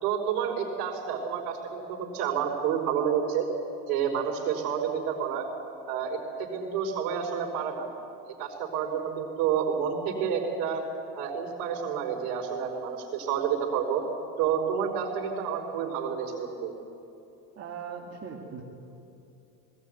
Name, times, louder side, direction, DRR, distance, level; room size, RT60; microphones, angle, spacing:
voice 1, 0.0-3.5 3.9-5.5 5.9-7.9 8.4-10.9 11.2-14.0 14.4-16.7, right 7 dB, 70° right, 1 dB, 5.1 m, -29 dB
voice 2, 17.6-18.6, right 6 dB, 30° right, -3 dB, 2.6 m, -39 dB
19.5 x 18.0 x 9.5 m, 2.8 s
supercardioid pair, 130°, 48 cm